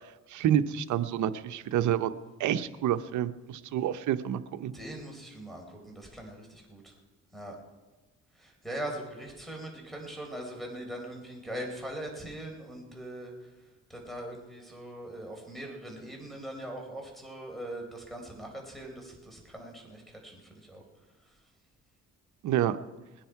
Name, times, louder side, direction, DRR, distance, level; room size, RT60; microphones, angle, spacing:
voice 1, 0.3-2.1 2.4-4.7 22.4-22.8, right 10 dB, 75° right, 12 dB, 0.8 m, -28 dB
voice 2, 4.7-6.8 7.3-7.6 8.4-13.3 13.9-20.8, right 1 dB, ahead, 1 dB, 4.0 m, -41 dB
20.5 x 10.0 x 4.7 m, 1.1 s
cardioid pair, 90°, 30 cm